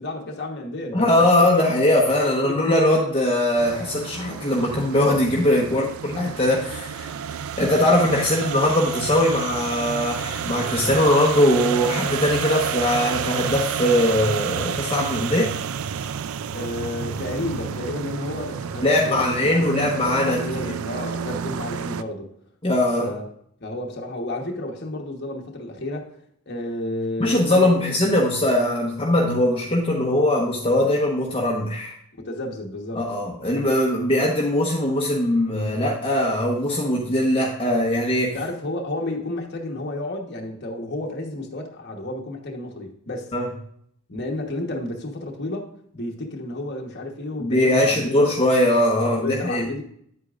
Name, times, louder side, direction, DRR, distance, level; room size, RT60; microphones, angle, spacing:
voice 1, 0.0-1.7 2.4-2.6 5.7-5.9 16.5-19.8 20.2-22.3 23.0-23.2 23.6-26.1 26.5-27.9 32.2-33.1 38.2-43.3 44.1-48.3 49.0-49.8, left 2 dB, 50° left, 1 dB, 1.2 m, -31 dB
voice 2, 0.9-15.5 18.8-20.8 22.6-23.1 27.2-31.9 32.9-38.4 43.3-43.5 47.4-49.6, left 1 dB, 25° left, -3 dB, 1.1 m, -21 dB
sound 1, 3.6-22.0, right 7 dB, 70° right, 0.4 m, -30 dB
9.6 x 8.3 x 2.5 m, 0.67 s
head